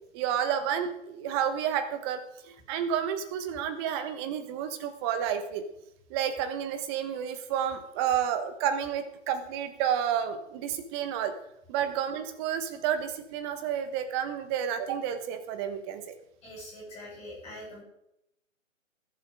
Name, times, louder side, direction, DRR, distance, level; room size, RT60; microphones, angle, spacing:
voice 1, 0.1-5.6 6.1-11.3 11.7-16.1, right 9 dB, 20° right, 9 dB, 1.2 m, -30 dB
voice 2, 16.4-17.8, equal, 10° left, -5 dB, 5.5 m, -43 dB
20.5 x 7.6 x 5.0 m, 0.81 s
figure-of-eight pair, 140°, 39 cm